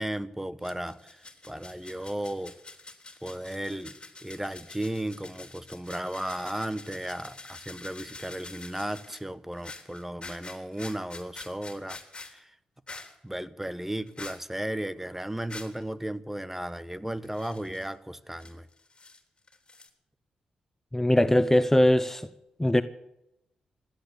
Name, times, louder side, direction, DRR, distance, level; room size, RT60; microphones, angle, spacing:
voice 1, 0.0-2.6 3.2-3.9 4.2-12.0 12.2-12.6 13.2-18.7, right 1 dB, 10° right, 1.1 m, -35 dB
sound 1, 0.6-9.2 9.5-12.4 12.9-13.1 14.1-14.4 15.4-15.8 17.2-17.9 18.4-19.2 19.5-19.9, left 3 dB, 35° left, 3.5 m, -46 dB
voice 2, 20.9-22.3 22.6-22.8, left 1 dB, 15° left, 0.8 m, -21 dB
16.0 x 10.5 x 8.2 m
hypercardioid pair, 40°, 3 cm